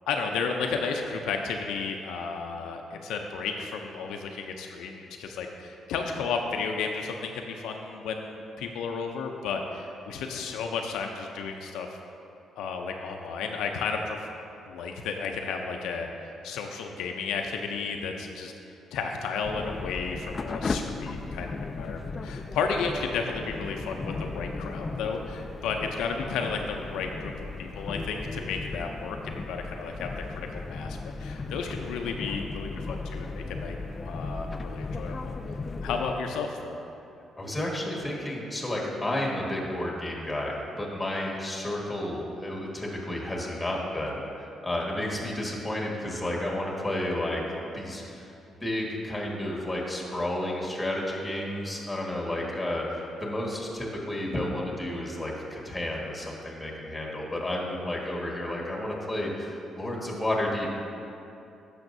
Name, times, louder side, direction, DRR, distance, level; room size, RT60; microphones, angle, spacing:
voice 1, 0.1-11.9 12.6-14.3 14.7-18.5 18.9-21.5 21.8-33.8 34.0-35.4 35.8-36.8, left 5 dB, 90° left, 3 dB, 0.5 m, -33 dB
sound 1, 19.4-36.1, left 3 dB, 35° left, 0.3 m, -36 dB
voice 2, 37.4-47.4 47.7-48.3 48.6-60.7, left 1 dB, 10° left, -2 dB, 1.6 m, -31 dB
10.5 x 6.5 x 2.6 m, 2.8 s
cardioid pair, 90°, 0 cm